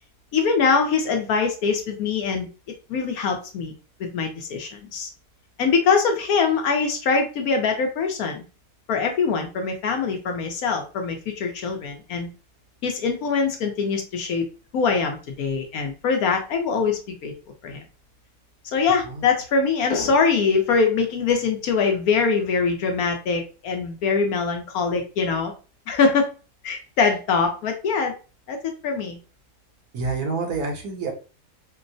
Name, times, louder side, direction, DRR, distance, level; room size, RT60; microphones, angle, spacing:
voice 1, 0.3-2.5 2.9-3.7 4.0-5.1 5.6-8.4 8.9-12.3 12.8-14.4 14.7-17.3 17.6-17.8 18.7-25.5 25.9-26.3 26.6-28.1 28.5-28.6 28.8-29.2, left 5 dB, 70° left, 4 dB, 1.0 m, -23 dB
voice 2, 29.9-31.1, right 4 dB, 65° right, 2 dB, 1.3 m, -27 dB
4.5 x 2.0 x 2.5 m, 0.34 s
omnidirectional pair, 1.7 m